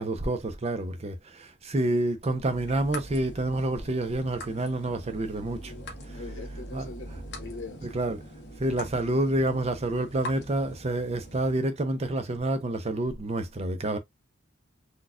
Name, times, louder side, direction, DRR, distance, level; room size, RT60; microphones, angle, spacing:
voice 1, 0.0-5.7 6.1-6.2 6.7-6.9 7.8-8.2 8.6-14.0, right 1 dB, 30° right, 0.6 m, -28 dB
sound 1, 2.5-11.5, equal, 55° left, 1.1 m, -42 dB
voice 2, 5.6-7.9, left 3 dB, 75° left, 1.3 m, -42 dB
4.1 x 2.3 x 2.4 m
head